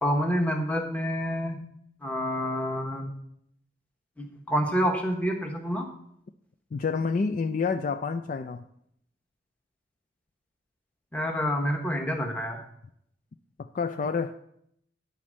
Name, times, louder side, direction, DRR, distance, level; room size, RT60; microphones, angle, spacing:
voice 1, 0.0-1.6 2.0-3.1 4.2-5.9 11.1-12.6, equal, 10° left, 2 dB, 1.0 m, -28 dB
voice 2, 6.7-8.6 13.7-14.3, left 5 dB, 45° left, 7 dB, 0.3 m, -28 dB
10.5 x 4.3 x 6.2 m, 0.72 s
head